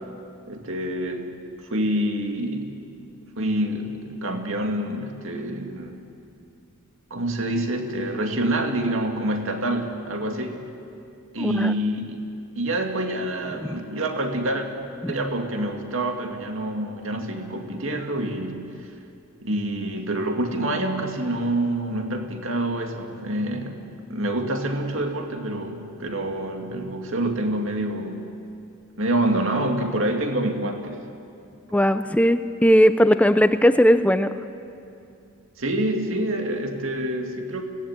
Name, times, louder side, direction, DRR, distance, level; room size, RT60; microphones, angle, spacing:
voice 1, 0.5-1.4 1.7-2.7 3.4-6.0 7.1-10.7 11.3-12.3 12.6-14.7 15.1-18.7 19.4-28.3 29.0-31.0 35.6-37.6, right 1 dB, 65° right, 3 dB, 2.3 m, -27 dB
voice 2, 11.4-11.7 13.6-13.9 15.0-15.1 31.7-34.3, equal, 5° left, 10 dB, 0.6 m, -18 dB
27.5 x 18.5 x 9.0 m, 2.6 s
head